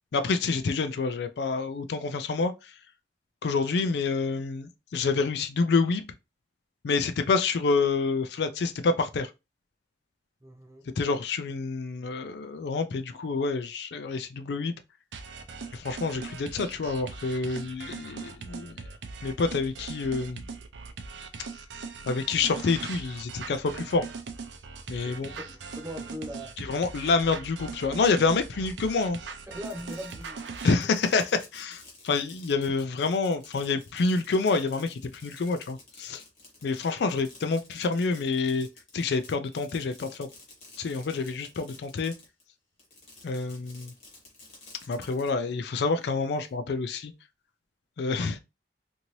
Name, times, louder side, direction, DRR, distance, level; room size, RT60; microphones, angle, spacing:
voice 1, 0.1-2.8 3.4-6.0 6.8-9.3 11.0-14.7 15.7-18.8 19.2-20.4 22.1-24.1 24.9-25.3 26.6-29.2 30.6-36.2 36.6-38.7 38.9-40.3 40.8-42.1 43.2-43.9 44.9-47.1 48.0-48.4, left 4 dB, 65° left, 0.4 m, -27 dB
voice 2, 10.4-10.9 25.0-26.5 29.5-30.5 30.8-30.9, equal, 15° right, 0.5 m, -40 dB
sound 1, 15.1-30.7, right 4 dB, 80° right, 0.5 m, -40 dB
Fireworks, 29.5-42.4 42.8-45.3, left 2 dB, 40° left, 1.3 m, -52 dB
2.7 x 2.6 x 3.0 m
head